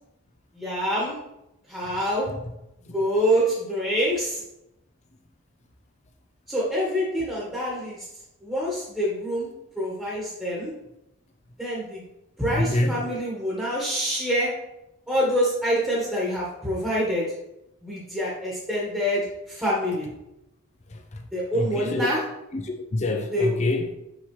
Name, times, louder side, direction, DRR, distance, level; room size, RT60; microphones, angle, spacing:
voice 1, 0.5-1.2 1.7-2.3 2.9-4.4 6.5-8.1 8.4-9.5 9.7-10.7 11.6-12.0 12.4-14.5 15.1-17.3 17.8-20.1 21.3-22.2 23.3-23.6, equal, 5° right, -7 dB, 1.4 m, -26 dB
voice 2, 12.5-13.0 20.9-21.2 21.5-22.1 22.5-23.9, left 2 dB, 30° left, 4 dB, 0.5 m, -26 dB
6.2 x 5.5 x 3.2 m, 0.87 s
head